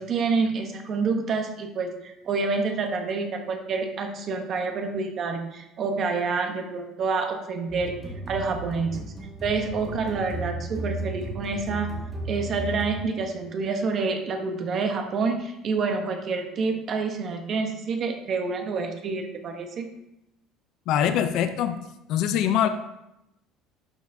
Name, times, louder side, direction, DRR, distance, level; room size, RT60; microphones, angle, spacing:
voice 1, 0.0-8.0 8.3-8.9 9.4-11.9 12.2-19.9, right 4 dB, 30° right, 5 dB, 0.9 m, -28 dB
sound 1, 7.7-13.4, right 1 dB, 10° right, 1.9 m, -35 dB
voice 2, 20.9-21.8 22.1-22.7, left 10 dB, 50° left, 9 dB, 0.5 m, -23 dB
11.5 x 6.5 x 2.7 m, 0.87 s
cardioid pair, 175°, 0 cm